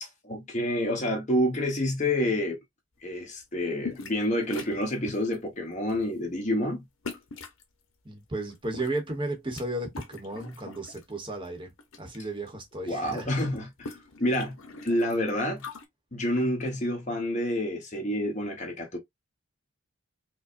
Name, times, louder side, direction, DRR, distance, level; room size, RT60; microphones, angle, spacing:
voice 1, 0.0-2.6 3.0-6.8 12.9-14.6 14.8-15.6 16.1-19.0, left 1 dB, 35° left, 1.2 m, -28 dB
sound 1, 3.8-4.2 4.5-5.4 5.9-6.1 7.0-7.6 8.5-9.6 9.9-11.0 11.4-12.2 12.5-12.6 12.8-15.8, left 4 dB, 70° left, 0.9 m, -42 dB
voice 2, 8.0-11.7 12.0-13.4, right 2 dB, 25° right, 1.0 m, -34 dB
4.9 x 2.2 x 2.6 m
head